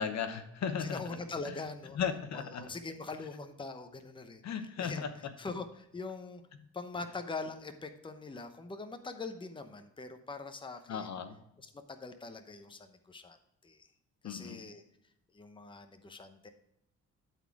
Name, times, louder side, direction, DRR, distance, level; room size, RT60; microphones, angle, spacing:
voice 1, 0.0-1.0 1.4-1.5 2.0-2.7 4.4-5.1 10.9-11.4 14.2-14.6, left 7 dB, 65° left, 9 dB, 1.0 m, -36 dB
voice 2, 0.8-2.0 2.3-6.4 6.7-11.1 11.6-13.4 13.6-13.9 14.2-14.8 15.3-16.5, left 3 dB, 15° left, 8 dB, 0.9 m, -43 dB
12.0 x 4.2 x 4.6 m, 0.81 s
cardioid pair, 90°, 30 cm